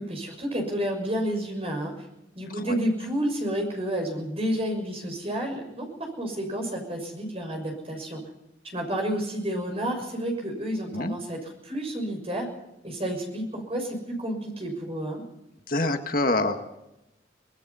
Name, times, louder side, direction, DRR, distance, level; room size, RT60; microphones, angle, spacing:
voice 1, 0.0-1.9 2.3-8.2 8.7-12.5 12.8-15.2, equal, 30° right, 2 dB, 6.3 m, -30 dB
voice 2, 15.7-16.6, left 2 dB, 50° left, 6 dB, 1.7 m, -25 dB
24.5 x 19.5 x 5.6 m, 0.90 s
head